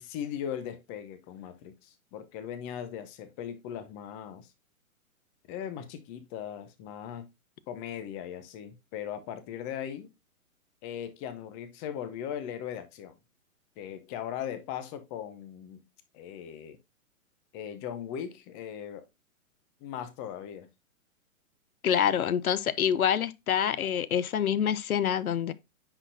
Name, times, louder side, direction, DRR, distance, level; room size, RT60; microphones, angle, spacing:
voice 1, 0.0-4.5 5.5-7.3 7.7-10.1 10.8-13.2 13.8-15.9 16.1-16.8 17.5-19.1 19.8-20.7, left 9 dB, 20° left, 0.8 m, -39 dB
voice 2, 21.8-25.5, left 9 dB, 80° left, 0.8 m, -26 dB
9.8 x 4.2 x 2.6 m
hypercardioid pair, 140°, 42 cm